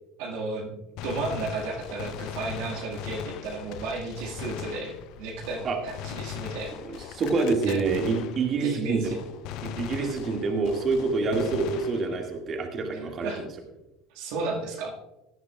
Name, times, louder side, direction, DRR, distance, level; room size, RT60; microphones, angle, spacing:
voice 1, 0.2-7.0 7.7-7.8 8.6-9.2 12.9-13.4 14.1-14.9, right 3 dB, 65° right, -1 dB, 1.8 m, -33 dB
Gunshot gunfire, 1.0-8.8 9.0-12.4, left 10 dB, 60° left, 0.6 m, -39 dB
voice 2, 6.8-9.2 9.6-13.5, right 4 dB, 40° right, 2 dB, 2.0 m, -27 dB
16.0 x 10.5 x 2.4 m, 1.0 s
hypercardioid pair, 70°, 0 cm